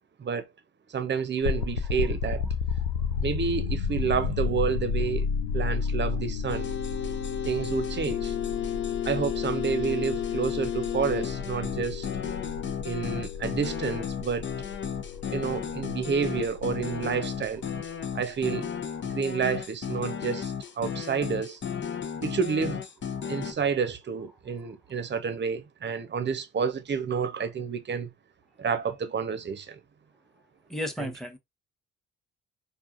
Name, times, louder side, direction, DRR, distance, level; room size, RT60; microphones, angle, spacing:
voice 1, 0.9-2.5 3.2-5.3 5.5-6.7 7.4-8.4 9.0-12.1 12.8-14.5 15.3-17.6 18.1-18.7 19.0-21.6 22.2-22.8 23.3-28.1 28.6-29.8 31.0-31.1, right 6 dB, 40° right, 0.8 m, -29 dB
sound 1, 1.4-18.3, left 6 dB, 90° left, 0.4 m, -32 dB
voice 2, 2.8-3.2 19.1-19.2 30.7-31.4, left 1 dB, ahead, 1.1 m, -36 dB
sound 2, 6.5-23.5, left 8 dB, 40° left, 0.7 m, -33 dB
4.7 x 2.5 x 2.5 m
hypercardioid pair, 45°, 29 cm